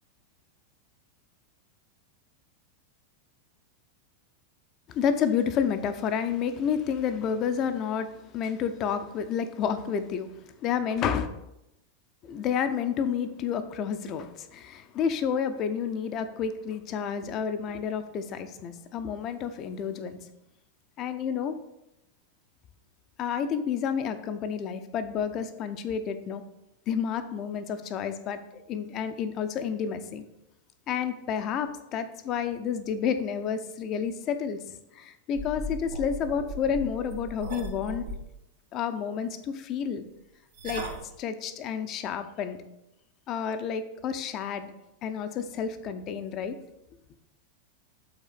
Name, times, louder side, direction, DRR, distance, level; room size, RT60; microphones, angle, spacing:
voice 1, 4.9-10.3 10.6-11.3 12.2-20.2 21.0-21.6 23.2-26.4 26.9-30.2 30.9-38.1 38.7-40.0 40.6-40.8 41.2-42.6 43.3-44.7 45.0-46.6, left 7 dB, 35° left, 9 dB, 0.5 m, -30 dB
sound 1, 35.3-38.2 40.5-41.0, right 1 dB, 70° right, 1.1 m, -37 dB
5.8 x 3.9 x 5.7 m, 0.86 s
figure-of-eight pair, 90°, 0 cm